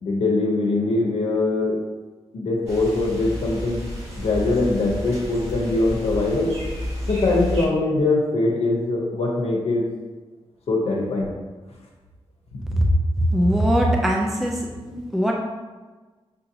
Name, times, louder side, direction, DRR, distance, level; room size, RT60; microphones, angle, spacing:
voice 1, 0.0-1.8 2.3-3.8 4.2-6.5 7.1-9.9 10.7-11.3 12.5-12.6 14.9-15.0, left 2 dB, 80° left, -2 dB, 0.7 m, -22 dB
sound 1, 2.7-7.7, equal, 90° right, 1.4 m, -31 dB
voice 2, 12.7-14.7 15.1-15.3, equal, ahead, -1 dB, 0.4 m, -20 dB
6.6 x 2.7 x 2.7 m, 1.3 s
wide cardioid pair, 175°, 11 cm